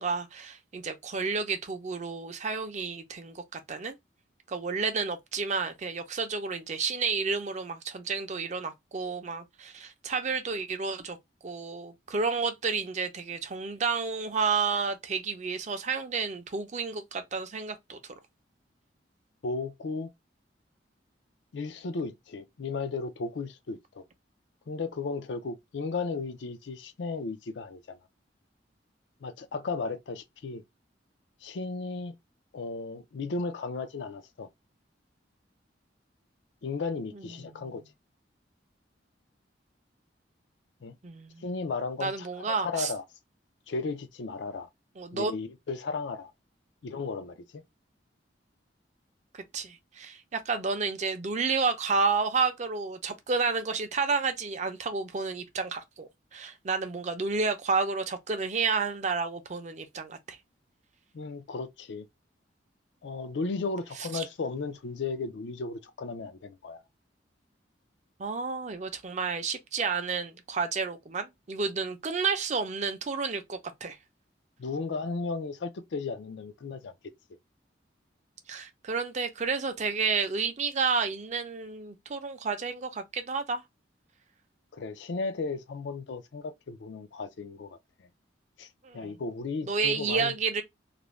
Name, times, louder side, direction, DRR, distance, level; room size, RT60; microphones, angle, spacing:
voice 1, 0.0-4.0 4.5-11.2 11.4-18.0 37.1-37.8 41.0-41.4 42.0-42.9 45.0-45.3 49.3-60.4 64.0-64.2 68.2-74.0 78.5-83.6 88.8-89.2 89.7-90.6, right 4 dB, 40° right, 0.5 m, -31 dB
voice 2, 19.4-20.1 21.5-24.0 24.7-28.0 29.2-30.6 31.4-32.1 32.5-34.5 36.6-37.8 40.8-41.0 41.4-43.0 43.7-44.7 45.1-46.3 46.8-47.6 61.1-62.1 63.0-66.8 74.6-76.9 84.7-87.8 88.6-88.7 88.9-90.3, left 4 dB, 70° left, 0.4 m, -35 dB
2.5 x 2.1 x 3.1 m
head